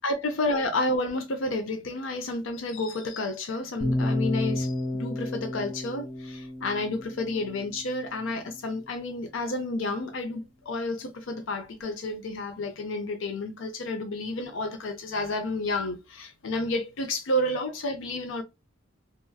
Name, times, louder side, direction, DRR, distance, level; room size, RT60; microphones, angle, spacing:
voice 1, 0.0-18.4, left 2 dB, 70° left, 0.5 m, -30 dB
sound 1, 3.8-7.9, left 1 dB, ahead, 0.7 m, -31 dB
2.9 x 2.6 x 2.2 m
head